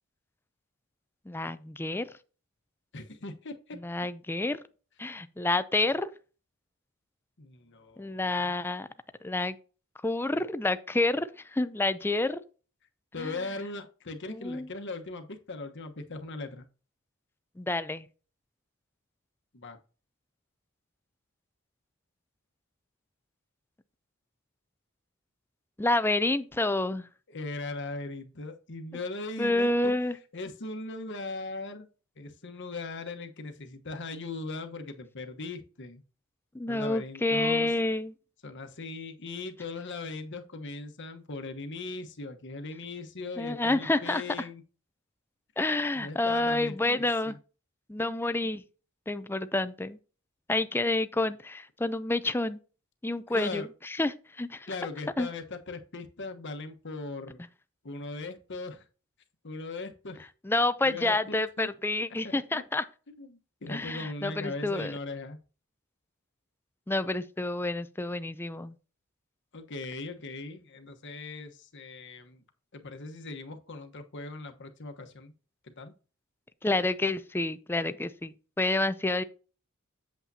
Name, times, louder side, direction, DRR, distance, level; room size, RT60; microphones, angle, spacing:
voice 1, 1.3-2.1 3.7-4.6 5.0-6.1 8.0-8.9 9.2-9.6 10.0-12.4 13.2-13.5 14.3-14.7 17.6-18.1 25.8-27.1 29.4-30.2 36.5-38.1 43.4-44.2 45.6-47.4 47.9-48.6 49.1-50.0 50.5-52.6 53.0-54.7 55.2-55.3 60.4-62.8 63.7-65.0 66.9-68.8 76.6-79.2, left 2 dB, 10° left, 0.4 m, -29 dB
voice 2, 2.9-3.8 7.4-8.5 13.1-16.6 19.5-19.8 27.3-29.9 30.3-31.9 32.2-36.0 36.7-37.7 38.4-44.6 46.0-47.4 48.0-48.1 53.3-53.7 54.7-57.4 57.8-58.8 59.4-60.3 60.8-61.7 62.5-62.6 63.2-65.4 69.5-72.4 72.7-75.3 75.6-75.9, left 3 dB, 55° left, 1.1 m, -39 dB
8.3 x 7.3 x 2.8 m
head